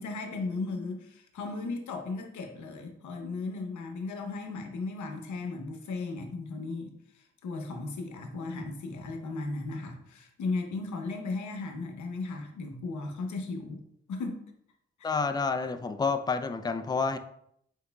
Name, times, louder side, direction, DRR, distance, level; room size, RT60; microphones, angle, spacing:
voice 1, 0.0-13.8 14.1-14.4 15.0-15.1, left 3 dB, 80° left, 4 dB, 0.8 m, -36 dB
voice 2, 15.0-17.2, left 4 dB, 15° left, 8 dB, 0.4 m, -29 dB
4.7 x 4.2 x 2.2 m, 0.73 s
cardioid pair, 55°, 29 cm